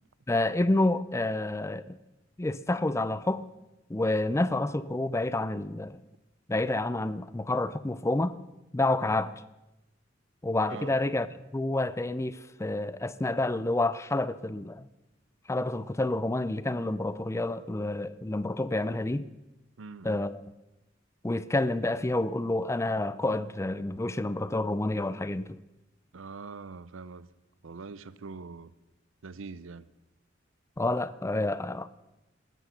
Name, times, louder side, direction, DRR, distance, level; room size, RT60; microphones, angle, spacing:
voice 1, 0.3-2.0 2.4-3.4 3.9-6.0 6.5-8.4 8.7-9.3 10.4-14.9 15.5-19.3 20.0-20.4 21.2-25.6 30.8-31.9, left 2 dB, 15° left, 0.5 m, -29 dB
voice 2, 19.8-20.2 26.1-27.3 27.6-28.7 29.2-29.9, right 4 dB, 85° right, 0.6 m, -43 dB
16.0 x 13.0 x 5.7 m
head